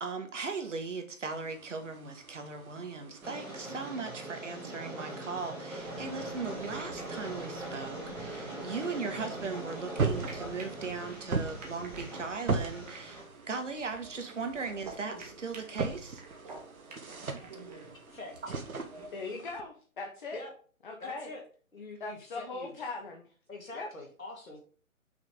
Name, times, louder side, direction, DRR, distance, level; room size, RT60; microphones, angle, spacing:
voice 1, 0.0-16.2, right 4 dB, 60° right, 6 dB, 1.4 m, -38 dB
sound 1, 1.3-3.7 9.4-19.6, right 4 dB, 75° right, 1.1 m, -38 dB
Train, 3.2-13.2, right 1 dB, 5° right, 0.8 m, -42 dB
sound 2, 5.8-19.1, right 3 dB, 30° right, 1.1 m, -50 dB
voice 2, 19.1-20.4 20.8-21.3 22.0-23.2 23.7-23.9, left 3 dB, 35° left, 2 dB, 0.8 m, -39 dB
voice 3, 21.0-21.4 21.7-22.9 23.5-24.6, left 2 dB, 70° left, 0 dB, 2.0 m, -44 dB
5.8 x 3.9 x 4.9 m, 0.43 s
figure-of-eight pair, 140°, 42 cm